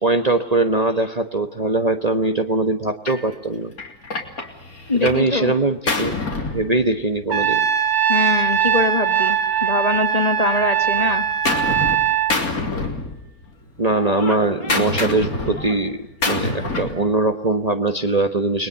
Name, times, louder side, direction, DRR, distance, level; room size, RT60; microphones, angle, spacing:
voice 1, 0.0-3.7 4.9-6.2 6.5-7.7 13.8-18.7, right 2 dB, 30° right, 6 dB, 1.2 m, -21 dB
Gunshot gunfire, 3.1-3.3 3.8-5.3 5.6-7.3 8.2-10.1 10.4-12.0 12.3-13.5 13.8-17.0, left 2 dB, 75° left, 3.7 m, -27 dB
voice 2, 4.9-5.5 8.1-11.3, left 3 dB, 25° left, 8 dB, 1.5 m, -23 dB
Trumpet, 7.3-12.4, right 9 dB, 80° right, 2.0 m, -20 dB
29.5 x 21.0 x 7.1 m, 0.76 s
omnidirectional pair, 1.5 m